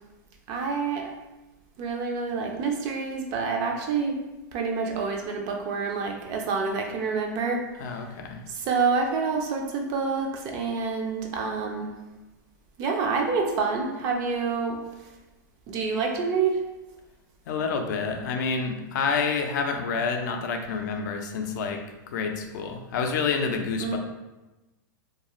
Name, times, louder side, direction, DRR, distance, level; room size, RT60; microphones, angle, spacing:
voice 1, 0.5-1.1 1.8-4.2 4.5-7.6 8.5-11.9 12.8-14.8 15.7-16.6 23.8-24.0, right 5 dB, 30° right, 2 dB, 0.4 m, -27 dB
voice 2, 7.8-8.4 17.5-21.8 22.1-24.0, left 5 dB, 60° left, 4 dB, 0.4 m, -28 dB
2.3 x 2.3 x 2.9 m, 1.0 s
supercardioid pair, 150°, 11 cm